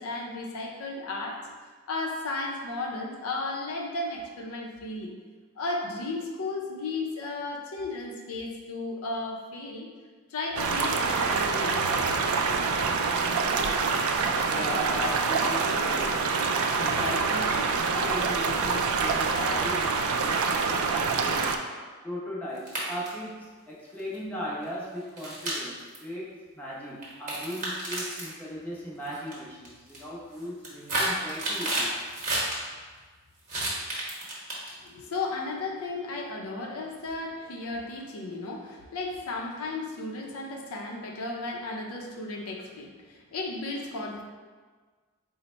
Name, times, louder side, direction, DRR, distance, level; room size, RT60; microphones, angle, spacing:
voice 1, 0.0-1.5 1.9-5.1 5.6-9.9 10.3-12.2 34.8-44.2, left 2 dB, 75° left, 0 dB, 0.5 m, -34 dB
sound 1, 10.6-21.6, right 4 dB, 70° right, 0.3 m, -26 dB
voice 2, 14.5-16.5 16.8-21.5 22.0-31.9, equal, 5° left, -7 dB, 0.7 m, -37 dB
sound 2, 22.6-23.2 24.0-24.1 25.2-26.0 27.0-28.3 29.1-29.3 29.6-30.0 30.4-32.5 33.5-34.9, right 1 dB, 35° right, 1.0 m, -31 dB
3.9 x 2.1 x 4.2 m, 1.4 s
head